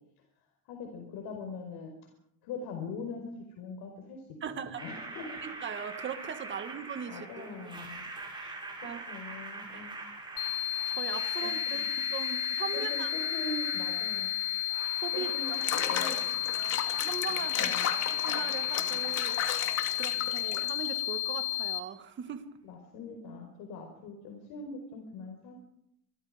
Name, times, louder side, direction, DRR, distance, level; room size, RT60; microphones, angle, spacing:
voice 1, 0.7-1.9 2.4-4.2 4.5-5.4 7.1-8.0 8.8-10.0 11.4-11.9 12.7-14.3 15.1-16.2 17.5-17.9 22.6-25.6, left 3 dB, 70° left, 3 dB, 5.3 m, -42 dB
voice 2, 4.4-4.8 5.4-7.6 8.3-8.5 8.8-9.0 9.7-9.9 10.6-11.8 12.1-13.1 15.0-15.9 16.5-22.5, right 7 dB, 30° right, 8 dB, 2.0 m, -40 dB
sound 1, 4.8-20.7, right 3 dB, 10° right, 6.3 m, -43 dB
sound 2, 10.4-21.8, left 16 dB, 90° left, 2.6 m, -32 dB
Water / Bathtub (filling or washing), 15.5-21.0, left 8 dB, 40° left, 2.7 m, -34 dB
28.0 x 23.0 x 5.3 m, 0.73 s
cardioid pair, 180°, 40 cm